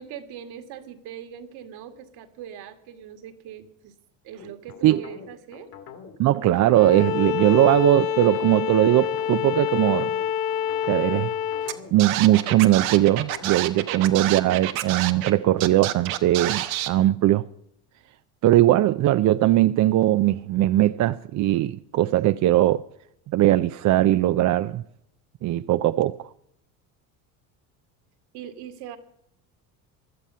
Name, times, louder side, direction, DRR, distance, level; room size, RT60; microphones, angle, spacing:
voice 1, 0.0-3.9 4.2-5.7 13.9-14.1 28.3-29.0, right 9 dB, 65° right, 2.1 m, -41 dB
sound 1, 4.4-14.0, left 7 dB, 55° left, 2.3 m, -44 dB
voice 2, 6.2-10.1 10.9-11.3 11.9-17.5 18.4-22.8 23.3-24.8 25.4-26.2, right 14 dB, 45° right, 0.5 m, -20 dB
Bowed string instrument, 6.7-11.8, left 10 dB, 80° left, 1.1 m, -27 dB
Scratching (performance technique), 11.7-11.8 12.0-15.3 15.6-16.9, right 13 dB, 90° right, 1.2 m, -28 dB
16.0 x 11.5 x 5.5 m
supercardioid pair, 90°, 41 cm